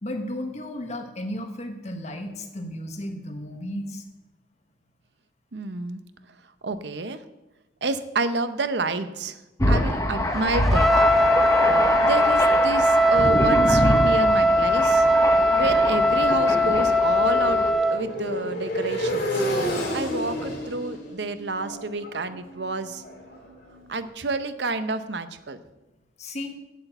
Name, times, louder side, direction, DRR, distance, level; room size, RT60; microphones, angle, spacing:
voice 1, 0.0-4.0 26.2-26.6, left 1 dB, 40° left, 5 dB, 1.3 m, -34 dB
voice 2, 5.5-6.0 6.6-7.2 7.8-9.4 9.7-10.9 12.0-15.1 15.5-17.6 17.9-19.4 19.9-23.0 23.9-25.6, right 3 dB, 65° right, 11 dB, 0.7 m, -29 dB
Thunder, 9.6-17.7, left 1 dB, 15° left, 1.1 m, -25 dB
Trumpet, 10.7-18.0, equal, ahead, 0.4 m, -20 dB
Motorcycle, 14.3-23.8, equal, 55° left, 3.2 m, -32 dB
8.4 x 8.2 x 7.9 m, 1.0 s
head